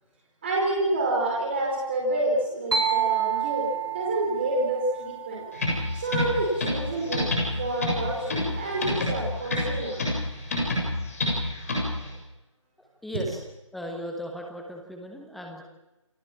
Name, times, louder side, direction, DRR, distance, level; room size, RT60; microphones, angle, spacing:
voice 1, 0.4-5.5 6.0-7.3 7.6-10.0 13.1-13.2, right 2 dB, 20° right, -1 dB, 4.5 m, -28 dB
sound 1, 2.7-6.4, right 8 dB, 45° right, 4.4 m, -29 dB
sound 2, 5.5-12.1, left 1 dB, 30° left, 7.3 m, -28 dB
voice 2, 12.8-13.4 13.7-15.6, equal, ahead, 1 dB, 1.1 m, -37 dB
28.5 x 20.0 x 7.4 m, 0.97 s
figure-of-eight pair, 160°, 17 cm